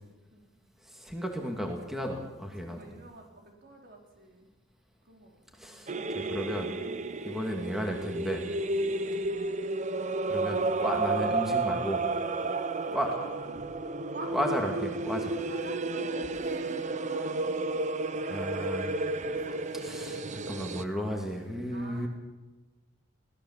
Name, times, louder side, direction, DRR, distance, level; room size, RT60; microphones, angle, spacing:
voice 1, 0.8-2.8 5.6-6.7 7.3-8.5 10.3-12.0 12.9-13.1 14.3-15.4 18.3-18.9 19.7-22.1, equal, ahead, 2 dB, 2.3 m, -34 dB
voice 2, 2.6-4.5 5.0-5.8 8.6-9.7 12.4-13.7 14.1-14.3 15.5-17.4 18.2-18.7 19.2-19.6 20.9-21.3 21.7-22.1, right 2 dB, 55° right, 2 dB, 4.7 m, -47 dB
sound 1, 5.9-20.8, right 2 dB, 40° right, 0.9 m, -32 dB
22.5 x 17.0 x 7.5 m, 1.2 s
head